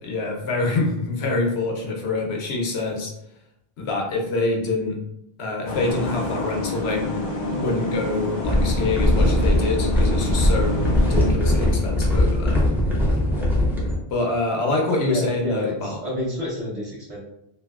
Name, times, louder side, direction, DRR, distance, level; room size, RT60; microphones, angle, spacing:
voice 1, 0.0-3.1 3.8-5.0 5.4-7.2 7.5-12.6 14.1-16.0, left 2 dB, 85° left, 0 dB, 1.0 m, -26 dB
sound 1, 5.7-11.3, left 2 dB, 55° left, 0.6 m, -28 dB
sound 2, 8.4-14.0, left 1 dB, ahead, 0.5 m, -20 dB
voice 2, 15.0-17.2, left 1 dB, 35° right, -9 dB, 0.9 m, -28 dB
2.9 x 2.6 x 2.3 m, 0.80 s
omnidirectional pair, 1.0 m